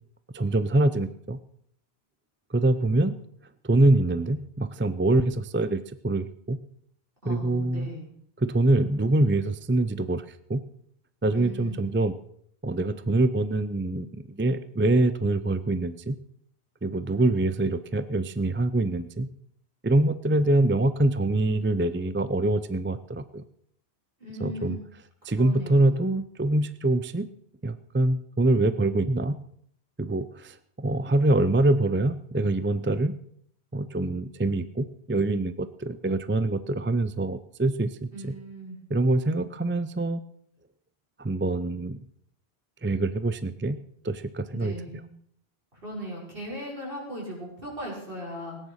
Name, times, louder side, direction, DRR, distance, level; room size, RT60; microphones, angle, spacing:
voice 1, 0.3-1.4 2.5-3.2 3.6-6.6 7.3-7.9 8.4-10.6 11.2-12.1 12.6-16.2 16.8-19.3 19.8-23.4 24.4-24.8 25.2-27.3 27.6-29.4 30.0-33.2 33.7-38.3 38.9-40.2 41.2-42.0 42.8-43.8 44.0-44.7, right 2 dB, 15° right, 13 dB, 0.4 m, -25 dB
voice 2, 7.2-8.0 11.3-11.9 24.2-24.8 25.2-26.0 38.1-38.8 44.5-45.1 45.7-48.6, equal, 60° right, -3 dB, 6.3 m, -38 dB
17.5 x 9.9 x 6.5 m, 0.66 s
omnidirectional pair, 1.1 m